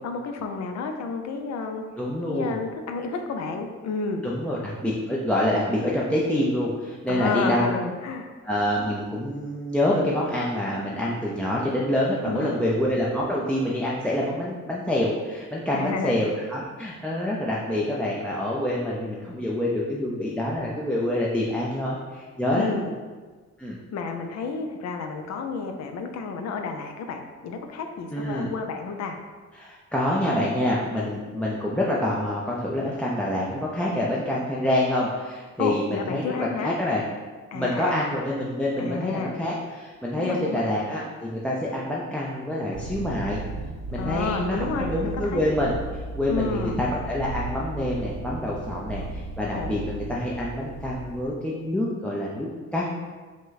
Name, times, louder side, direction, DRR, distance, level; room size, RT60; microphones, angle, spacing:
voice 1, 0.0-1.8 2.3-4.2 7.1-8.3 12.2-12.6 15.7-16.2 22.6-22.9 23.9-29.2 35.6-36.7 37.5-38.1 38.8-39.4 40.2-40.7 43.9-45.5 46.3-46.8 49.5-49.7, left 4 dB, 60° left, 5 dB, 0.6 m, -31 dB
voice 2, 2.0-2.5 4.2-7.7 8.4-22.7 23.6-23.8 28.1-28.5 29.5-37.0 37.5-43.4 43.9-52.9, left 1 dB, 5° left, -5 dB, 0.5 m, -26 dB
sound 1, 42.7-51.2, right 2 dB, 60° right, 0.8 m, -35 dB
5.1 x 2.2 x 3.9 m, 1.4 s
cardioid pair, 90°, 30 cm